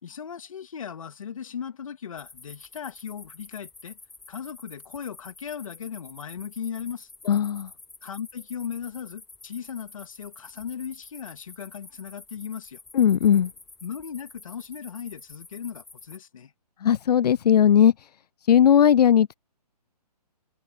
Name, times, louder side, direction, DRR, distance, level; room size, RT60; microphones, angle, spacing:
voice 1, 0.0-4.0 4.3-7.1 8.0-12.8 13.8-16.5, left 8 dB, 55° left, 2.7 m, -37 dB
sound 1, 2.2-16.2, left 3 dB, ahead, 0.6 m, -48 dB
voice 2, 7.3-7.7 12.9-13.5 16.8-18.1 18.5-19.3, left 9 dB, 75° left, 0.5 m, -18 dB
hypercardioid pair, 175°, 21 cm